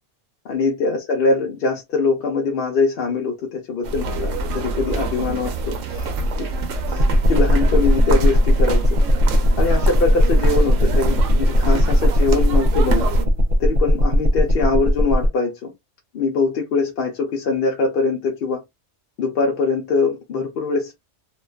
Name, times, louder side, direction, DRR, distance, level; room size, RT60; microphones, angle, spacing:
voice 1, 0.4-6.1 6.4-6.5 6.9-8.8 9.3-13.1 13.6-15.7 16.1-18.6 19.2-21.0, left 4 dB, 60° left, 0.7 m, -23 dB
sound 1, 3.8-13.3, right 2 dB, 85° right, 0.9 m, -25 dB
sound 2, 7.0-15.3, left 1 dB, 70° right, 0.4 m, -18 dB
2.4 x 2.2 x 2.3 m
omnidirectional pair, 1.3 m